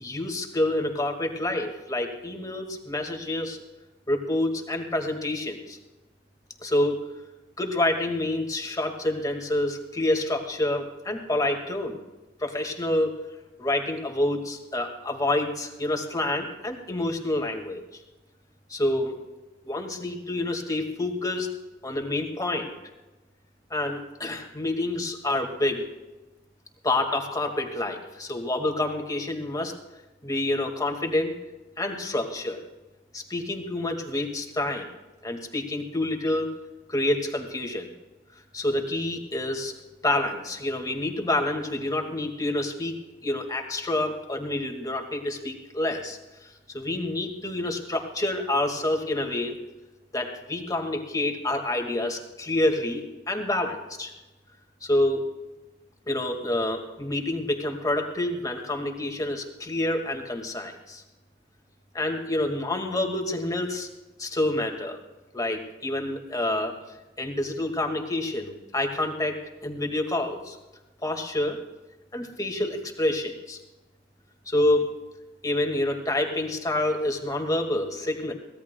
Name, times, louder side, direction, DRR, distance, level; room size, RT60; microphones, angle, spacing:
voice 1, 0.0-3.6 4.1-5.8 6.6-7.1 7.6-12.0 12.4-13.2 13.6-17.8 18.7-19.1 19.7-21.5 21.8-22.7 23.7-25.9 26.8-29.7 30.2-31.3 31.8-32.6 33.1-34.9 35.2-36.5 36.9-37.9 38.5-39.7 40.0-42.9 43.2-49.6 50.1-54.1 54.8-55.3 56.1-61.0 61.9-63.9 64.2-65.0 65.3-66.8 67.2-70.6 71.0-71.6 72.1-73.6 74.5-74.9 75.4-78.3, left 1 dB, 20° left, 3 dB, 1.8 m, -28 dB
23.5 x 17.0 x 2.2 m, 1.1 s
head